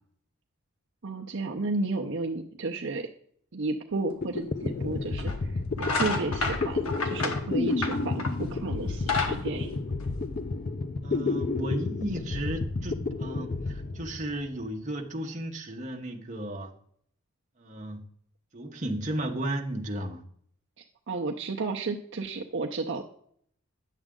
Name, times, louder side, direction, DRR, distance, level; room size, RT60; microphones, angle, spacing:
voice 1, 1.0-3.1 3.5-9.8 20.8-23.0, right 3 dB, 55° right, 0.6 m, -33 dB
sound 1, 3.9-4.0 4.2-14.7, left 3 dB, 40° left, 0.5 m, -31 dB
sound 2, 4.4-4.5 5.2-5.4 5.7-8.5 8.8-10.5, left 3 dB, 80° left, 1.3 m, -30 dB
voice 2, 11.0-16.7 17.6-18.0 18.5-20.2, right 1 dB, 35° right, 1.0 m, -34 dB
10.0 x 7.2 x 3.7 m
head